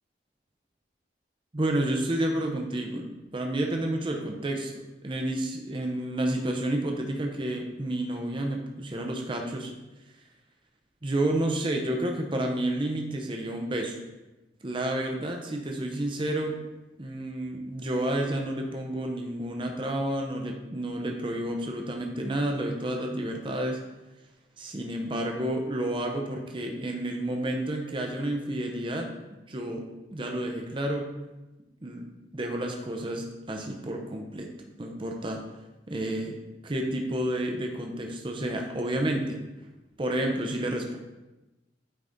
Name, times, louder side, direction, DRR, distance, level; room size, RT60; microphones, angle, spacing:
voice 1, 1.5-9.7 11.0-14.0 14.6-16.6 17.0-23.8 24.6-29.1 29.5-29.8 30.1-31.1 31.8-34.5 34.8-35.4 35.9-36.4 36.6-39.4 40.0-41.0, right 1 dB, 25° right, 2 dB, 0.6 m, -30 dB
8.8 x 4.0 x 3.6 m, 1.1 s
head